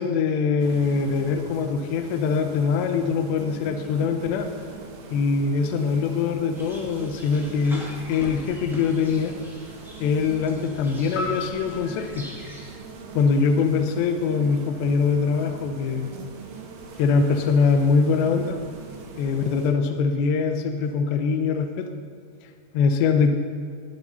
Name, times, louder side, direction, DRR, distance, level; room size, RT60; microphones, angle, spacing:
voice 1, 0.0-4.5 5.1-9.3 10.0-12.3 13.1-16.2 17.0-18.6 19.2-21.9 22.7-23.3, left 5 dB, 75° left, 6 dB, 2.9 m, -23 dB
sound 1, 0.6-19.7, right 4 dB, 80° right, 4.0 m, -42 dB
sound 2, 6.5-12.8, equal, ahead, 1.4 m, -42 dB
sound 3, 11.2-13.6, left 2 dB, 50° left, 4.5 m, -36 dB
21.0 x 7.7 x 5.5 m, 2.3 s
omnidirectional pair, 5.4 m